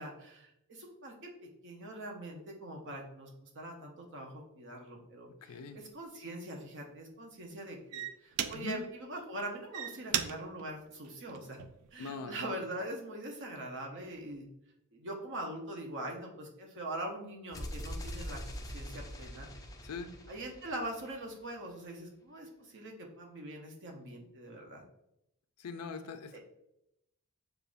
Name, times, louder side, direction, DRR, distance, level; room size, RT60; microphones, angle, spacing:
voice 1, 0.0-11.6 11.9-14.4 14.9-19.5 20.3-24.8 26.3-26.4, right 1 dB, 55° right, 1 dB, 0.8 m, -43 dB
voice 2, 5.4-5.8 8.5-8.8 12.0-12.5 19.8-20.1 25.6-26.4, left 4 dB, 80° left, 8 dB, 0.5 m, -42 dB
sound 1, 5.7-5.9 6.5-6.8 7.5-7.6 7.9-8.9 9.5-11.9 12.4-12.8, right 10 dB, 85° right, 0.3 m, -38 dB
sound 2, 17.5-21.4, equal, 15° left, 0.4 m, -43 dB
6.6 x 2.4 x 2.5 m, 0.82 s
head